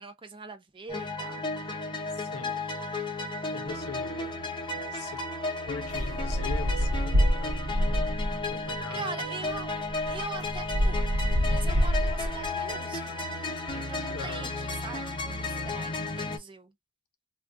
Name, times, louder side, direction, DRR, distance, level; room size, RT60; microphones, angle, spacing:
voice 1, 0.0-2.0 2.3-2.6 8.9-9.7 10.1-13.3 13.7-16.7, right 4 dB, 25° right, 0.5 m, -42 dB
sound 1, 0.9-16.4, left 2 dB, 20° left, 0.6 m, -34 dB
voice 2, 2.1-2.6 3.5-4.4 4.9-5.2 5.7-7.6 8.5-9.1 14.1-14.5, left 4 dB, 80° left, 0.6 m, -41 dB
sound 2, 5.9-8.5 9.5-9.6 9.8-12.5, equal, 90° right, 0.7 m, -26 dB
2.3 x 2.3 x 3.6 m
head